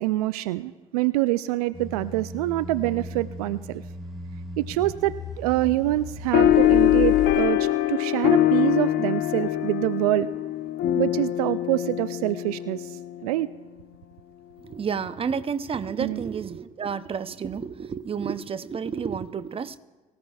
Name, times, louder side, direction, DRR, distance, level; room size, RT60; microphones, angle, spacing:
voice 1, 0.0-3.8 4.6-10.3 11.0-13.5 16.0-16.2, right 17 dB, 75° right, 16 dB, 0.4 m, -26 dB
sound 1, 1.7-7.5, left 4 dB, ahead, 4.0 m, -35 dB
sound 2, 6.3-13.2, left 12 dB, 65° left, 0.8 m, -23 dB
voice 2, 14.6-19.8, right 6 dB, 30° right, 13 dB, 0.7 m, -30 dB
23.5 x 15.5 x 2.4 m, 1.2 s
hypercardioid pair, 55°, 19 cm